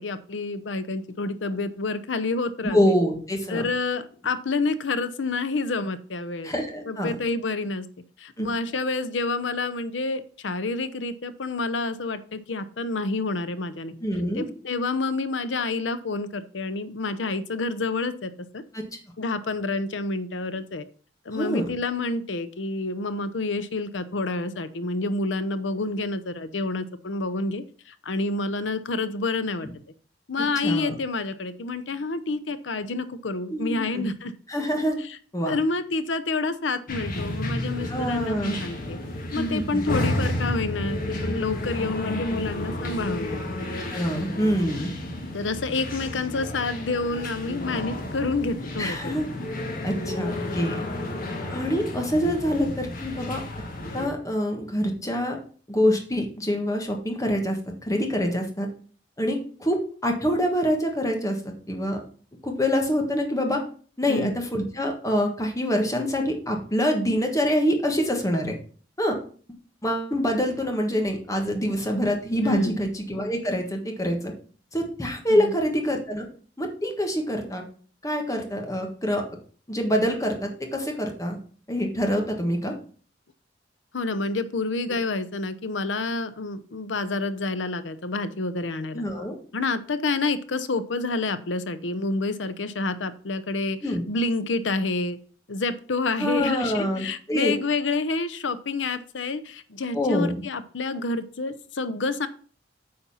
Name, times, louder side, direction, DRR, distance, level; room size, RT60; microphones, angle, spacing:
voice 1, 0.0-2.9 3.5-6.5 6.9-7.9 8.2-13.9 14.3-18.6 19.2-20.8 21.2-29.7 30.3-34.3 35.0-35.2 35.5-39.0 39.3-43.4 45.3-49.2 64.1-64.4 72.4-72.8 75.3-75.6 83.9-89.0 89.5-95.2 95.5-102.3, left 3 dB, 85° left, 13 dB, 0.7 m, -28 dB
voice 2, 2.6-3.7 6.4-7.1 8.4-8.5 14.0-14.5 18.7-18.8 21.3-21.7 30.6-30.9 33.5-34.1 34.5-35.0 35.3-35.6 37.9-38.7 39.3-39.8 43.9-44.9 48.8-49.3 49.8-50.8 51.5-53.4 53.9-55.4 55.7-57.6 57.9-58.7 59.2-61.4 61.7-62.0 62.4-63.6 64.0-68.6 69.0-69.2 69.8-74.3 74.7-76.2 76.6-77.6 78.0-79.2 79.7-81.4 81.7-82.7 88.9-89.4 93.8-94.0 96.2-97.5 99.9-100.4, equal, 20° left, 2 dB, 1.5 m, -25 dB
sound 1, 36.9-54.1, left 1 dB, 50° left, 1.6 m, -32 dB
8.6 x 4.3 x 5.5 m, 0.42 s
head